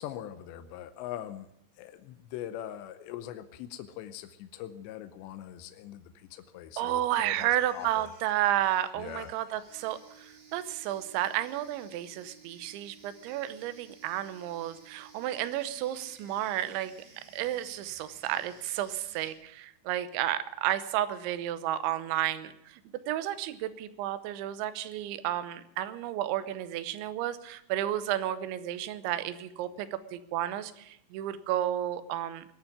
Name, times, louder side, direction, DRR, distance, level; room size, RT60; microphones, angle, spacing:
voice 1, 0.0-1.5 1.8-8.1 9.0-9.3, left 11 dB, 80° left, 10 dB, 2.6 m, -42 dB
voice 2, 6.8-16.9 17.3-32.4, right 12 dB, 75° right, 13 dB, 3.0 m, -32 dB
sound 1, 7.3-19.3, right 5 dB, 45° right, 4.0 m, -56 dB
20.0 x 7.2 x 9.7 m, 0.79 s
omnidirectional pair, 5.6 m